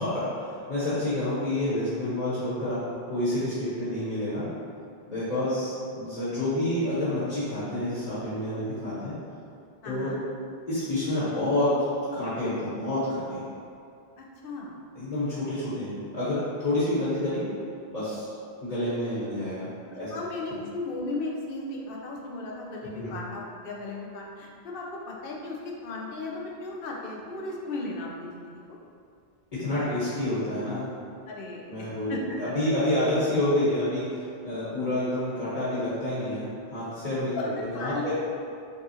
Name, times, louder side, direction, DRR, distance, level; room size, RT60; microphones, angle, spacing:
voice 1, 0.0-2.8 3.1-4.5 5.1-9.1 9.8-10.1 10.7-13.4 14.9-17.4 17.9-18.3 18.6-20.1 20.5-20.6 22.9-23.2 29.5-30.9 31.6-34.1 34.4-38.1, left 1 dB, 40° left, -11 dB, 1.2 m, -28 dB
voice 2, 9.8-10.2 14.2-14.7 19.9-28.8 29.7-29.9 31.3-32.2 37.4-38.1, left 2 dB, 65° left, -2 dB, 0.8 m, -36 dB
5.4 x 2.4 x 2.7 m, 2.4 s
omnidirectional pair, 1.0 m